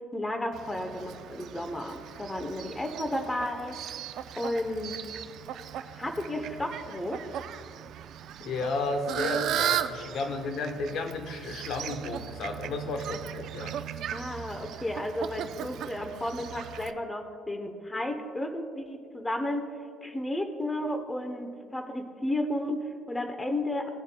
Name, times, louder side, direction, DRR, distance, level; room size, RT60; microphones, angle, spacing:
voice 1, 0.1-3.8 4.4-5.0 5.9-7.2 14.1-19.6 20.0-23.9, left 1 dB, 10° left, 6 dB, 0.8 m, -33 dB
Fowl, 0.5-16.9, right 10 dB, 65° right, 0.4 m, -37 dB
voice 2, 8.4-13.8, left 3 dB, 60° left, 6 dB, 1.0 m, -33 dB
18.0 x 7.2 x 2.2 m, 2.2 s
cardioid pair, 130°, 0 cm